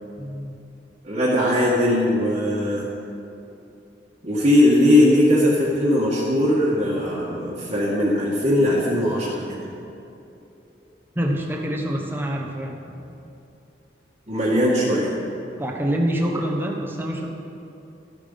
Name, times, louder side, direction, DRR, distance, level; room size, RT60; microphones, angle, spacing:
voice 1, 0.2-0.6 11.1-12.8 15.6-17.3, equal, 10° right, 0 dB, 1.2 m, -26 dB
voice 2, 1.0-2.9 4.2-9.6 14.3-15.1, left 1 dB, 35° right, -7 dB, 1.7 m, -19 dB
13.0 x 8.9 x 5.6 m, 2.8 s
head